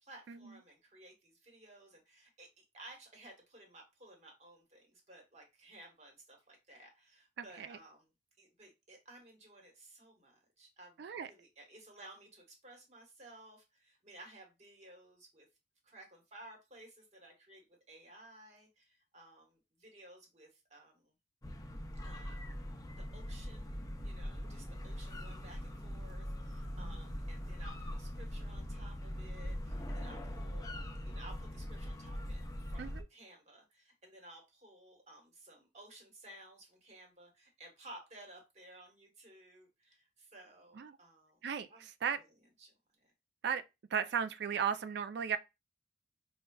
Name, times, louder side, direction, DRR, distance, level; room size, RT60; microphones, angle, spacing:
voice 1, 0.0-8.1 8.4-15.4 15.8-21.1 22.0-22.5 23.1-30.7 30.9-32.4 32.7-41.4 41.7-41.9 42.6-42.7, right 1 dB, 40° right, 1.2 m, -56 dB
voice 2, 7.4-7.8 11.0-11.3 26.8-27.0 32.8-33.0 40.8-41.0 41.4-42.2 43.4-43.6 43.9-45.4, right 7 dB, 65° right, 0.4 m, -36 dB
sound 1, 21.4-33.0, equal, 20° left, 0.5 m, -42 dB
5.5 x 2.3 x 2.2 m
head